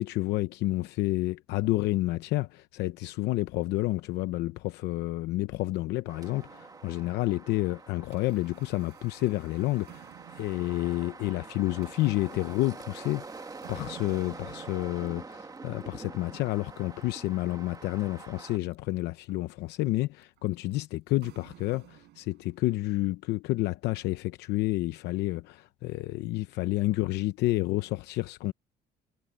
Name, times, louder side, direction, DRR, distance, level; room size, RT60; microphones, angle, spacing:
voice 1, 0.0-10.1 10.3-28.5, left 17 dB, 85° left, 0.8 m, -30 dB
sound 1, 6.1-18.6, right 4 dB, 20° right, 1.8 m, -46 dB
sound 2, 6.4-7.3 7.8-22.8, right 16 dB, 80° right, 7.0 m, -55 dB
cardioid pair, 110°, 17 cm